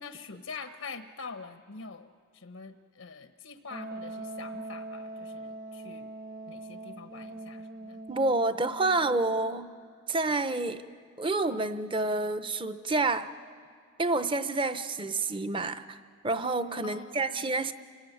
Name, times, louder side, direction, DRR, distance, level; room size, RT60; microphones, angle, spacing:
voice 1, 0.0-6.1 6.5-8.0 16.8-17.5, left 4 dB, 80° left, 7 dB, 1.0 m, -45 dB
Wind instrument woodwind instrument, 3.7-9.2, right 2 dB, 40° right, 1.2 m, -42 dB
voice 2, 8.1-9.7 10.1-10.8 11.2-13.3 14.0-17.7, right 2 dB, 25° right, 11 dB, 0.7 m, -28 dB
28.5 x 18.5 x 9.3 m, 2.1 s
head